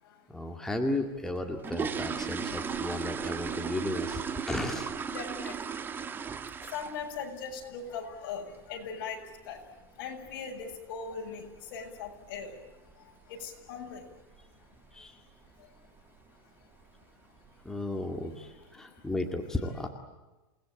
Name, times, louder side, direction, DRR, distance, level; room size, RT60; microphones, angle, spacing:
voice 1, 0.3-4.9 14.9-15.2 17.6-19.9, left 2 dB, 5° left, 3 dB, 2.1 m, -34 dB
sound 1, 1.3-7.2 7.5-7.7 8.1-8.2 8.5-8.7 9.1-9.3 9.6-9.7 10.2-10.3 10.6-10.8 11.3-11.6 11.9-12.0 12.4-12.6 12.9-13.0 13.4-13.5 14.1-14.4 14.8-15.1 15.4-15.5 16.0-16.1 16.8-17.0 17.4-17.9 18.3-18.4, right 6 dB, 15° right, 1.2 m, -36 dB
voice 2, 5.1-5.8 6.1-6.3 6.6-14.1 14.7-14.8 15.4-15.9 16.6-17.0 17.7-17.8 18.2-19.1, left 5 dB, 60° left, 2 dB, 7.4 m, -41 dB
28.5 x 20.0 x 8.9 m, 1.1 s
supercardioid pair, 150°, 12 cm